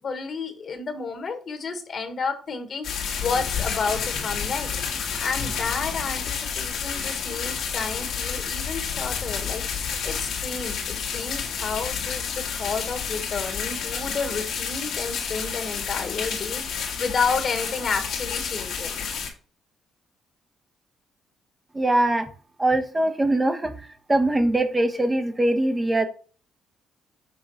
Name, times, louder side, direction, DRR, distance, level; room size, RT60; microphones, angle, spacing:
voice 1, 0.0-4.7 5.2-19.1, left 5 dB, 50° left, 7 dB, 1.5 m, -31 dB
sound 1, 2.8-19.3, left 7 dB, 75° left, 1.7 m, -30 dB
voice 2, 21.7-22.3 22.6-23.7 24.1-26.1, right 1 dB, 20° right, 8 dB, 1.0 m, -22 dB
6.5 x 3.8 x 4.1 m, 0.41 s
cardioid pair, 90°, 0 cm